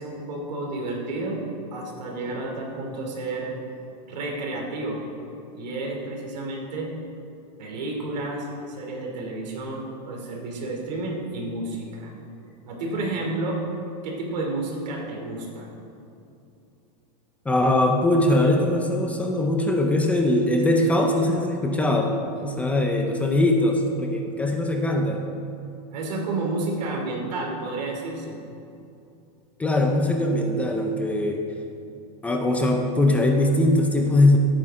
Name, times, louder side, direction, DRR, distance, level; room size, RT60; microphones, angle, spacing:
voice 1, 0.0-1.5 1.7-3.5 4.1-5.0 5.5-6.9 7.6-12.1 12.6-13.6 14.0-15.7 25.9-28.4, right 2 dB, 85° right, 0 dB, 3.1 m, -31 dB
voice 2, 17.5-25.2 29.6-31.4 32.2-34.4, left 1 dB, 5° left, 2 dB, 0.6 m, -21 dB
16.5 x 8.9 x 3.7 m, 2.7 s
supercardioid pair, 165°, 21 cm